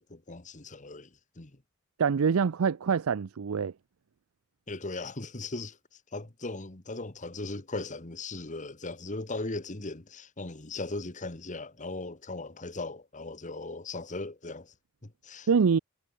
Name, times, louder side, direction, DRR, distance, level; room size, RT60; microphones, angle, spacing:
voice 1, 0.0-1.6 4.7-5.8 6.1-14.7 15.0-15.5, left 2 dB, 35° left, 1.6 m, -38 dB
voice 2, 2.0-3.7 15.5-15.8, right 6 dB, 75° right, 0.5 m, -25 dB
head